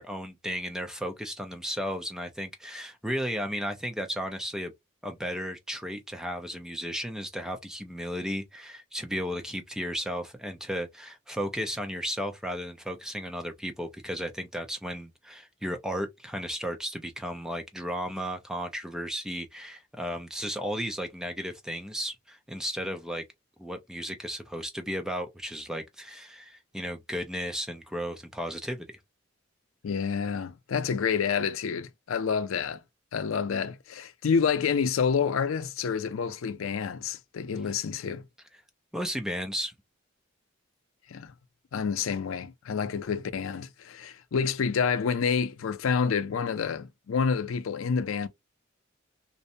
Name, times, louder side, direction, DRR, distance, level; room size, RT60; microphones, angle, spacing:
voice 1, 0.0-4.7 5.0-23.2 23.6-28.9 38.9-39.7, equal, 5° right, 0.4 m, -34 dB
voice 2, 29.8-32.8 33.1-38.3 41.1-41.3 41.7-48.3, left 6 dB, 90° left, 0.4 m, -28 dB
2.6 x 2.1 x 2.5 m
head